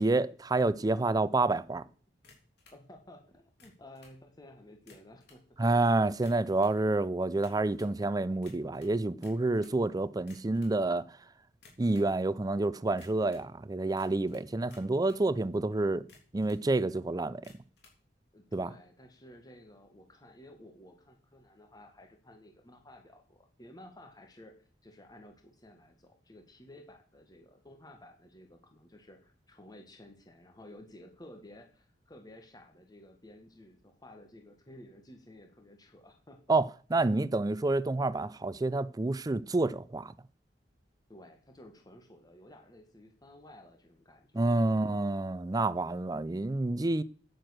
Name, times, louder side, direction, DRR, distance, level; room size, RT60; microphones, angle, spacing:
voice 1, 0.0-1.8 5.6-11.1 11.8-16.1 16.3-17.4 18.5-18.7 36.5-40.1 44.3-47.0, right 2 dB, 20° right, 0.4 m, -28 dB
sound 1, 2.2-2.8 3.5-4.2 4.8-5.5 6.1-6.8 7.4-8.0 8.4-9.8 10.2-10.8 11.5-12.1 13.0-13.5 14.0-15.3 15.9-16.7 17.3-18.0, left 3 dB, 65° left, 3.4 m, -59 dB
voice 2, 2.7-5.4 18.3-24.5 24.8-36.4 41.1-44.6, left 1 dB, 20° left, 1.6 m, -54 dB
9.4 x 9.0 x 6.4 m
head